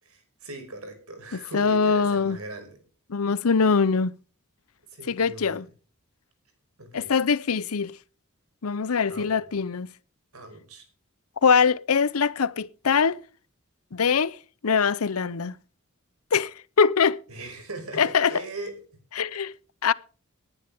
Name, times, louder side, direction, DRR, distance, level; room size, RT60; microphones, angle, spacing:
voice 1, 0.0-2.8 3.7-3.8 4.9-5.7 6.8-7.1 9.1-9.4 10.3-10.8 17.3-18.8, right 2 dB, 80° right, 5.3 m, -40 dB
voice 2, 1.5-2.4 3.1-4.1 5.1-5.7 6.9-8.0 8.6-9.9 11.4-13.2 13.9-14.4 14.6-15.6 16.3-17.2 18.0-18.4 19.2-19.5 19.8-19.9, left 5 dB, 80° left, 0.7 m, -23 dB
19.5 x 11.0 x 3.5 m
head